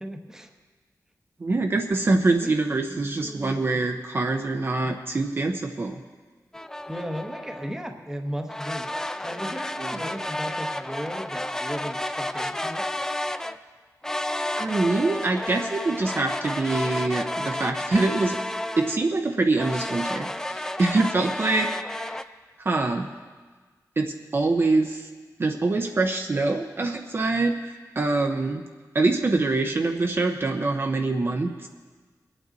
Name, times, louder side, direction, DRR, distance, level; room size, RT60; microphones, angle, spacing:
voice 1, 0.0-0.5 2.4-2.6 2.9-3.6 6.9-8.9 9.2-12.8, equal, 10° right, 4 dB, 1.0 m, -36 dB
voice 2, 1.4-6.0 9.8-10.0 14.6-18.4 18.8-21.7 22.6-23.1 24.0-25.1 25.4-28.6 28.9-31.7, right 3 dB, 35° right, 4 dB, 0.7 m, -24 dB
sound 1, 6.5-7.7 8.5-13.6 14.0-19.1 19.6-22.2, left 1 dB, 10° left, 0.4 m, -31 dB
21.5 x 8.9 x 4.0 m, 1.4 s
wide cardioid pair, 135°, 7 cm